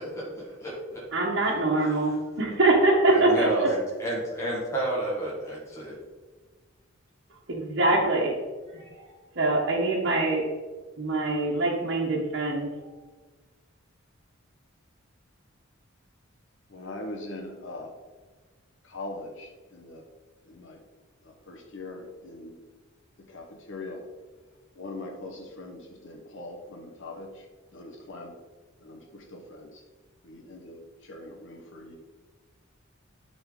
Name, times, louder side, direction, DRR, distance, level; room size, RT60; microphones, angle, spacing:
voice 1, 0.0-1.0 1.8-1.9 3.1-6.0, right 1 dB, 15° left, -6 dB, 1.7 m, -31 dB
voice 2, 1.1-3.5 7.5-8.4 8.7-9.1 9.3-10.4 11.0-12.7, right 2 dB, 60° right, -5 dB, 1.3 m, -24 dB
voice 3, 16.7-18.0 18.8-20.1 20.4-20.8 21.2-22.6 23.2-24.0 24.7-27.5 27.7-28.4 28.8-29.8 30.2-32.0, left 2 dB, 65° left, 1 dB, 1.2 m, -41 dB
11.5 x 4.0 x 3.9 m, 1.3 s
head